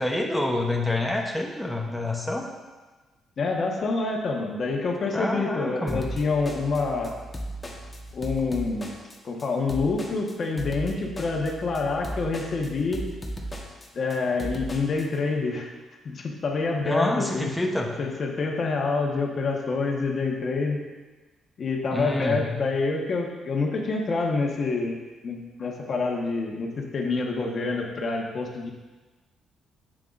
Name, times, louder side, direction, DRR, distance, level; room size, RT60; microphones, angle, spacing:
voice 1, 0.0-2.5 5.1-6.0 16.8-17.9 21.9-22.4, left 1 dB, 5° left, -1 dB, 0.9 m, -27 dB
voice 2, 3.4-7.1 8.1-8.9 9.2-13.0 13.9-15.7 16.0-17.5 18.0-20.8 21.6-25.0 25.2-28.7, left 3 dB, 50° left, 0 dB, 1.3 m, -27 dB
sound 1, 5.9-15.0, right 1 dB, 25° left, 1.2 m, -36 dB
9.2 x 7.6 x 2.6 m, 1.3 s
cardioid pair, 90°, 0 cm